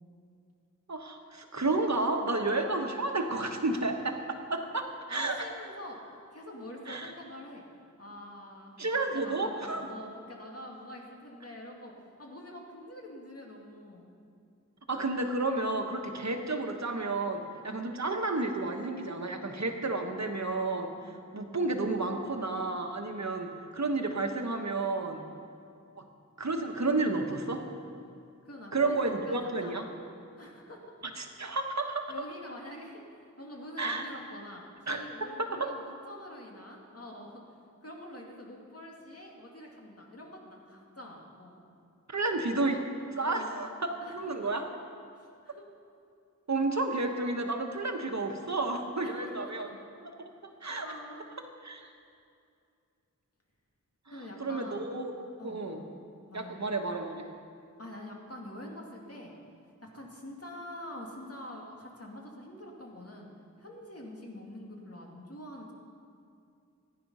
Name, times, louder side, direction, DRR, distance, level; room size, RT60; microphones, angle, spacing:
voice 1, 0.9-4.1 4.5-5.5 6.9-7.1 8.8-9.9 14.9-25.2 26.0-26.1 26.4-27.6 28.7-29.9 31.2-32.1 33.8-34.1 34.9-35.0 35.6-35.7 42.1-42.8 43.2-43.7 44.1-44.6 46.5-49.7 50.2-50.9 51.6-51.9 54.4-55.1 55.4-55.8 56.3-57.3, right 2 dB, 60° right, 4 dB, 1.3 m, -31 dB
voice 2, 5.1-7.6 8.0-8.8 9.1-11.9 12.2-14.2 16.1-16.3 21.0-21.2 25.3-25.5 28.4-29.9 30.4-31.0 32.1-33.0 33.4-37.4 37.8-41.6 43.2-43.7 44.0-44.5 45.1-45.7 49.0-49.7 50.8-51.3 54.1-54.9 55.4-55.9 56.3-56.7 57.8-59.3 59.8-63.3 63.6-65.7, left 1 dB, 50° left, -1 dB, 2.3 m, -46 dB
15.5 x 10.0 x 5.6 m, 2.5 s
wide cardioid pair, 60°, 31 cm